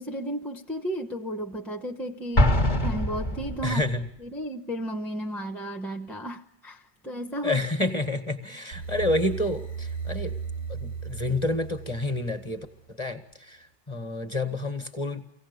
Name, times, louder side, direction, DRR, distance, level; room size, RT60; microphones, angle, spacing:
voice 1, 0.0-3.9 4.2-7.6, equal, ahead, 2 dB, 0.8 m, -34 dB
Explosion, 2.4-3.9, left 1 dB, 45° left, 1.5 m, -23 dB
voice 2, 3.6-4.1 7.4-10.4 10.7-15.2, left 2 dB, 25° left, 8 dB, 1.6 m, -29 dB
sound 1, 8.7-12.8, right 5 dB, 90° left, 2.2 m, -36 dB
24.5 x 17.5 x 6.9 m, 0.77 s
omnidirectional pair, 1.1 m